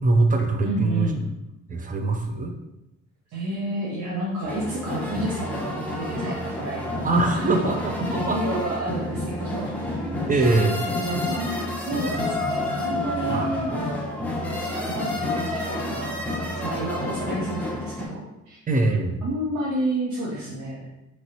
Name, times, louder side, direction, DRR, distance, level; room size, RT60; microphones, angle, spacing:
voice 1, 0.0-1.1 1.7-2.5 7.0-8.6 10.0-10.8 13.3-13.8 18.7-19.2, right 2 dB, 30° right, 3 dB, 0.4 m, -23 dB
voice 2, 0.6-1.2 3.3-7.1 7.3-7.7 8.0-9.9 11.0-13.7 14.4-16.1 16.6-18.6 19.2-20.9, right 1 dB, 65° right, -5 dB, 0.7 m, -30 dB
sound 1, 4.4-18.1, left 1 dB, 5° left, 0.7 m, -29 dB
3.0 x 2.6 x 2.7 m, 0.90 s
cardioid pair, 90°, 30 cm